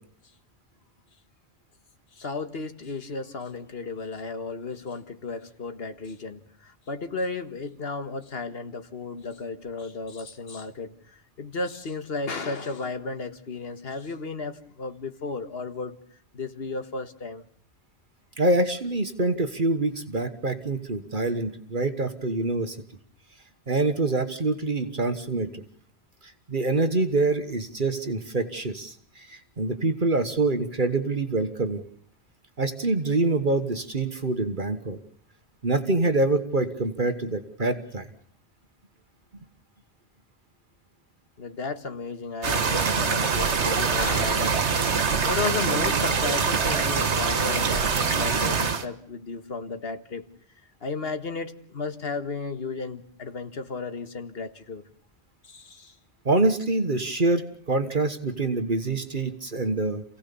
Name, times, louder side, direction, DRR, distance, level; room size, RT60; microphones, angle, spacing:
voice 1, 2.2-16.0 16.3-17.4 41.4-45.0 45.2-50.3 50.8-54.8 55.5-55.9, left 4 dB, 60° left, 8 dB, 1.8 m, -34 dB
voice 2, 18.4-22.8 23.7-25.5 26.5-31.8 32.6-35.0 35.6-38.1 56.2-60.0, right 2 dB, 50° right, 9 dB, 1.6 m, -25 dB
sound 1, 42.4-48.9, right 5 dB, 90° right, 1.6 m, -24 dB
28.0 x 17.0 x 7.0 m, 0.65 s
omnidirectional pair, 1.1 m